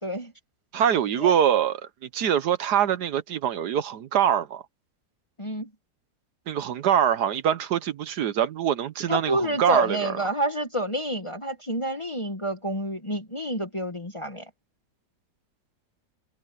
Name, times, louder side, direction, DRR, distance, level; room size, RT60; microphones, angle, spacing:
voice 1, 0.0-0.3 1.2-1.3 5.4-5.7 9.1-14.5, right 1 dB, 20° left, 1.1 m, -28 dB
voice 2, 0.7-1.8 2.1-4.6 6.5-10.1, right 9 dB, 65° right, 1.3 m, -24 dB
omnidirectional pair, 2.0 m